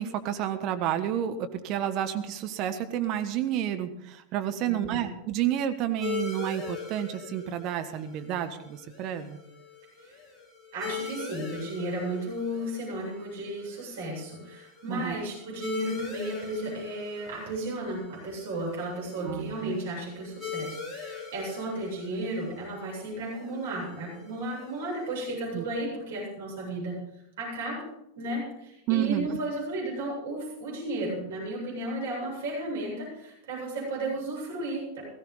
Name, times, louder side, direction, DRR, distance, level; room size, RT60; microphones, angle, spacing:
voice 1, 0.0-9.4 14.9-15.3 19.2-19.8 25.5-25.7 28.9-29.3, right 11 dB, 40° right, 7 dB, 1.2 m, -30 dB
voice 2, 4.6-5.1 10.0-10.2 10.7-27.0 27.4-27.8 28.1-35.0, right 1 dB, 55° right, -3 dB, 7.9 m, -34 dB
sound 1, 6.0-25.2, left 6 dB, 10° left, 3.7 m, -42 dB
17.0 x 15.5 x 4.0 m, 0.84 s
figure-of-eight pair, 90°, 0 cm